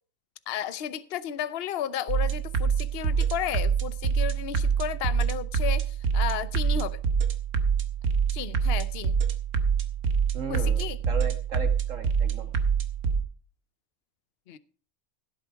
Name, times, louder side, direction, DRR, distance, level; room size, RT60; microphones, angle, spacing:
voice 1, 0.5-7.0 8.3-9.1 10.5-11.0 14.5-14.6, left 10 dB, 55° left, 16 dB, 0.8 m, -33 dB
sound 1, 2.1-13.2, right 6 dB, 85° right, 1.6 m, -26 dB
voice 2, 10.3-12.5, right 6 dB, 60° right, 6 dB, 2.2 m, -36 dB
16.5 x 8.2 x 4.7 m, 0.39 s
omnidirectional pair, 1.5 m